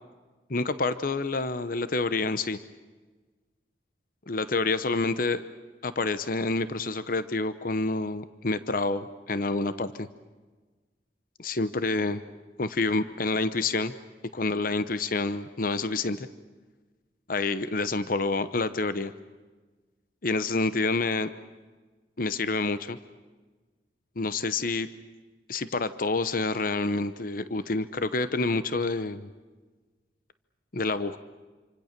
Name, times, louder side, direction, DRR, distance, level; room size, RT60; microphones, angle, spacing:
voice 1, 0.5-2.6 4.3-5.4 5.8-10.1 11.4-12.2 12.6-13.9 14.3-16.3 17.3-19.1 20.2-21.3 22.2-23.0 24.2-24.9 25.5-29.3 30.7-31.2, left 3 dB, 50° left, 12 dB, 0.9 m, -28 dB
27.5 x 26.0 x 6.7 m, 1.3 s
head